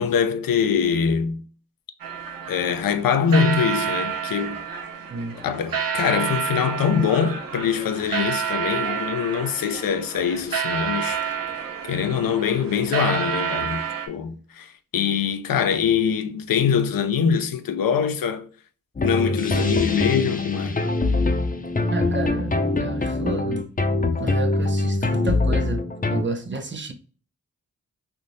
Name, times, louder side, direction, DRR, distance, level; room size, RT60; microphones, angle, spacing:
voice 1, 0.0-1.4 2.5-4.6 5.4-11.2 11.9-18.5 19.0-20.8, left 7 dB, 85° left, 0.5 m, -23 dB
sound 1, 2.0-14.1, right 7 dB, 75° right, 0.7 m, -29 dB
voice 2, 5.1-5.4 21.9-22.5 22.8-26.9, right 2 dB, 35° right, 0.7 m, -31 dB
sound 2, 19.0-26.2, left 2 dB, 25° left, 0.6 m, -23 dB
3.5 x 2.6 x 2.6 m
cardioid pair, 50°, 34 cm